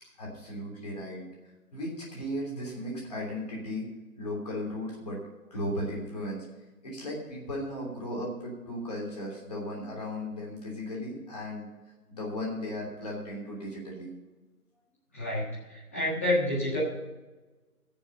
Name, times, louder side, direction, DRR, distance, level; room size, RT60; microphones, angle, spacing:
voice 1, 0.2-1.2 1.7-3.9 4.2-5.2 5.5-6.4 6.8-11.7 12.1-14.1, left 1 dB, 25° left, -3 dB, 3.2 m, -36 dB
voice 2, 15.1-16.8, left 1 dB, 10° left, -7 dB, 1.5 m, -29 dB
15.5 x 7.1 x 5.3 m, 1.2 s
figure-of-eight pair, 175°, 46 cm